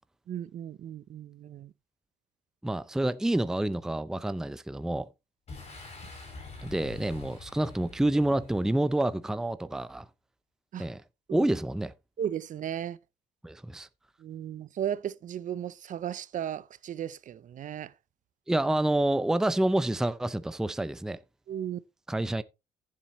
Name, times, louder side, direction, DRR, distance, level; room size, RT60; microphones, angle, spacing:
voice 1, 0.3-1.7 10.7-10.9 11.3-11.5 12.2-13.0 14.2-17.9 21.5-21.8, right 10 dB, 50° right, 0.7 m, -35 dB
voice 2, 2.6-5.1 6.6-10.1 10.8-11.0 11.3-11.9 13.4-13.9 18.5-21.2 22.1-22.4, right 1 dB, 5° right, 0.5 m, -28 dB
Boom, 5.5-9.1, left 4 dB, 40° left, 6.6 m, -46 dB
14.5 x 7.6 x 3.1 m
cardioid pair, 110°, 17 cm